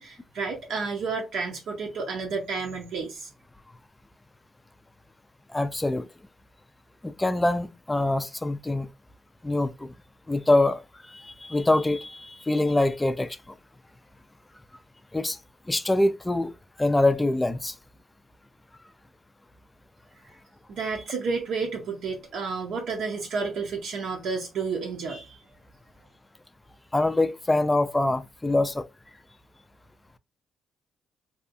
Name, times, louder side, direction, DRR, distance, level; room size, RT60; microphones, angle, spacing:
voice 1, 0.0-3.3 20.7-25.4, right 4 dB, 75° right, 0.7 m, -31 dB
voice 2, 5.5-6.1 7.0-8.9 9.4-9.9 10.3-10.8 11.1-13.4 15.1-15.4 15.7-16.5 16.8-17.7 26.9-28.8, left 2 dB, 15° left, 0.3 m, -24 dB
2.7 x 2.2 x 2.5 m
cardioid pair, 90°, 0 cm